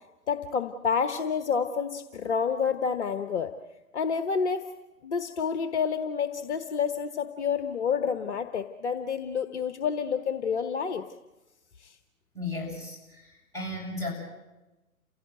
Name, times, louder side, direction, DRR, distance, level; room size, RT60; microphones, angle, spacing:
voice 1, 0.3-3.5 3.9-4.6 5.0-11.0 11.8-12.0, left 6 dB, 50° left, 9 dB, 1.2 m, -29 dB
voice 2, 12.3-14.1, left 2 dB, 5° left, -4 dB, 7.9 m, -35 dB
29.5 x 16.5 x 9.1 m, 1.1 s
figure-of-eight pair, 125°, 44 cm